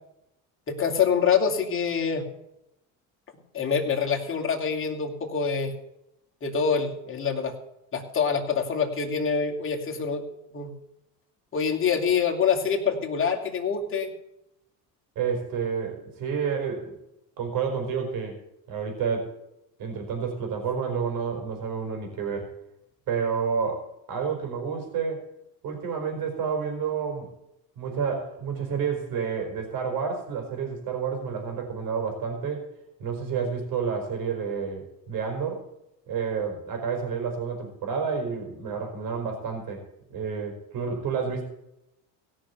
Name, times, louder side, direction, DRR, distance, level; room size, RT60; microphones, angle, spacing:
voice 1, 0.7-2.2 3.5-5.7 6.4-7.5 7.9-10.2 10.5-10.7 11.5-14.1, left 6 dB, 35° left, 1 dB, 2.9 m, -25 dB
voice 2, 15.2-16.9 17.4-18.4 18.7-19.3 19.8-22.5 23.1-25.2 25.6-27.3 27.8-32.7 33.0-35.7 36.1-39.8 40.1-41.4, right 6 dB, 70° right, 3 dB, 4.3 m, -30 dB
16.5 x 6.3 x 8.2 m, 0.84 s
cardioid pair, 105°, 36 cm